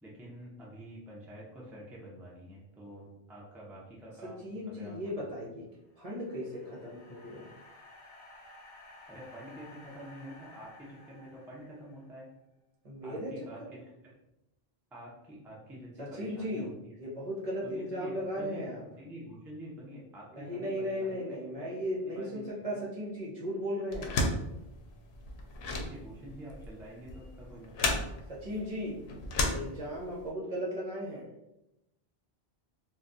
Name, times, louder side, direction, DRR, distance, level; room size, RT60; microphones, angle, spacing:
voice 1, 0.0-4.9 9.1-12.3 13.0-13.8 14.9-16.9 17.6-18.7 19.0-21.2 21.6-21.8 22.1-22.8 25.8-28.2, equal, ahead, -5 dB, 0.5 m, -47 dB
voice 2, 4.2-5.6 6.0-7.5 12.8-13.3 13.6-13.7 16.0-16.7 17.0-18.8 20.3-24.2 28.3-29.0 29.4-31.3, equal, 40° right, -5 dB, 0.8 m, -36 dB
sound 1, 5.8-12.2, left 2 dB, 60° left, 0.9 m, -54 dB
small door lock unlock, 23.9-30.3, left 2 dB, 85° left, 0.8 m, -34 dB
2.4 x 2.2 x 3.9 m, 0.90 s
omnidirectional pair, 1.1 m